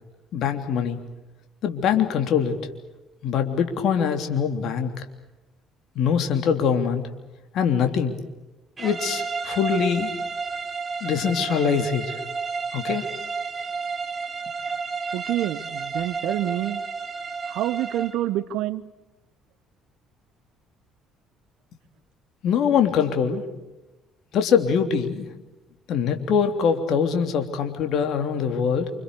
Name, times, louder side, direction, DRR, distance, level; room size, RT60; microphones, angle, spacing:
voice 1, 0.3-1.0 1.6-2.6 3.2-4.9 5.9-7.0 7.5-8.2 8.8-10.1 11.0-12.2 12.7-13.1 22.4-23.4 24.3-25.3 25.9-28.9, left 7 dB, 60° left, 6 dB, 3.3 m, -23 dB
sound 1, 8.8-18.2, right 5 dB, 30° right, 3.4 m, -31 dB
voice 2, 15.1-16.8 17.5-18.8, right 14 dB, 70° right, 16 dB, 1.1 m, -27 dB
28.0 x 26.5 x 6.9 m, 1.0 s
hypercardioid pair, 55°, 0 cm